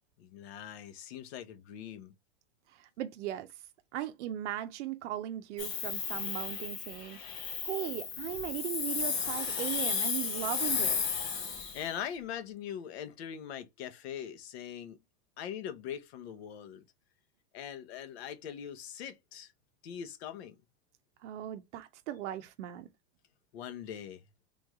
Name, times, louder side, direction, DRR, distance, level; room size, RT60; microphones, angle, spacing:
voice 1, 0.2-2.1 11.4-15.0 15.4-16.9 17.5-19.5 19.8-20.5 23.5-24.2, left 9 dB, 65° left, 0.9 m, -42 dB
voice 2, 2.7-3.5 3.9-7.2 7.6-11.0 21.2-22.9, right 12 dB, 80° right, 0.7 m, -38 dB
Hiss, 5.6-11.9, left 6 dB, 35° left, 1.1 m, -34 dB
3.5 x 3.2 x 3.5 m
supercardioid pair, 180°, 35 cm